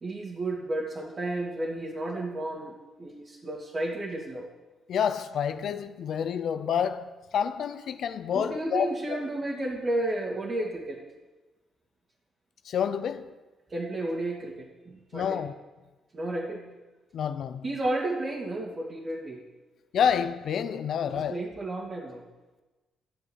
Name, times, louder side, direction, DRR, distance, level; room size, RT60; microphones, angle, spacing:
voice 1, 0.0-2.7 3.0-4.5 8.3-11.0 13.7-15.4 16.1-16.7 17.6-19.4 21.1-22.2, right 1 dB, 35° right, 2.3 m, -32 dB
voice 2, 4.9-9.2 12.6-13.3 15.1-15.5 17.1-17.7 19.9-21.4, left 8 dB, 65° left, 0.7 m, -28 dB
13.5 x 7.8 x 8.2 m
cardioid pair, 90°, 0 cm